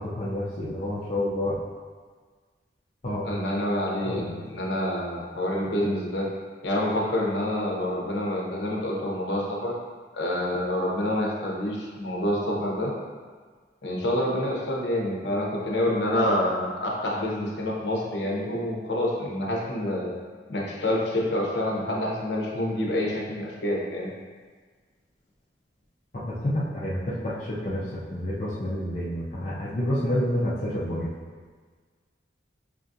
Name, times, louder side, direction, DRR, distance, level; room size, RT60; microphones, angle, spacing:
voice 1, 0.0-1.6 3.0-3.3 4.0-4.3 26.1-31.1, left 1 dB, 40° left, -7 dB, 0.5 m, -29 dB
voice 2, 3.2-6.3 6.6-9.7 10.1-12.9 13.8-20.1 20.5-24.1, left 1 dB, 75° left, -3 dB, 0.7 m, -27 dB
5.5 x 2.3 x 2.6 m, 1.5 s
head